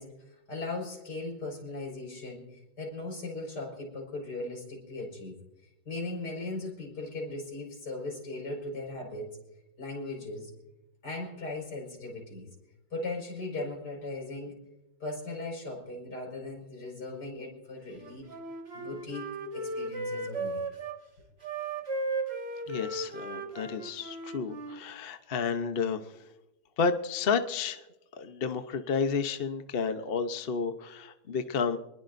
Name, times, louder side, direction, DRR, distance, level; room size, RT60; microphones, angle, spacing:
voice 1, 0.0-5.3 5.9-9.3 9.8-10.5 11.0-12.5 12.9-14.5 15.0-18.3 18.7-19.3 19.5-20.6, left 2 dB, 80° left, 0 dB, 5.8 m, -38 dB
Wind instrument woodwind instrument, 18.0-21.0 21.4-24.8, right 2 dB, 40° right, 2.0 m, -36 dB
voice 2, 22.7-26.3 26.8-27.9 28.2-31.8, left 5 dB, 45° left, 8 dB, 0.9 m, -31 dB
25.5 x 20.5 x 2.6 m, 0.94 s
omnidirectional pair, 1.8 m